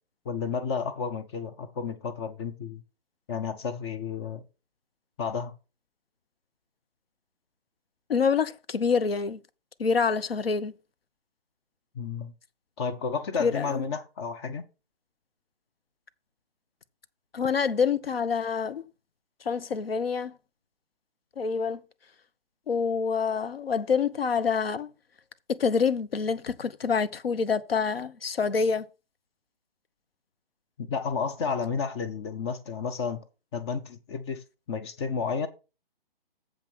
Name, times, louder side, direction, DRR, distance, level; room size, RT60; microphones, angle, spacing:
voice 1, 0.2-2.8 3.3-4.4 5.2-5.6 11.9-12.3 12.8-14.6 30.8-33.2 33.5-35.5, left 5 dB, 30° left, 0.8 m, -31 dB
voice 2, 8.1-9.4 9.8-10.7 13.4-13.8 17.3-18.8 19.4-20.3 21.4-21.8 22.7-24.9 25.5-28.9, left 5 dB, 80° left, 1.0 m, -26 dB
7.4 x 5.9 x 6.1 m
figure-of-eight pair, 140°, 29 cm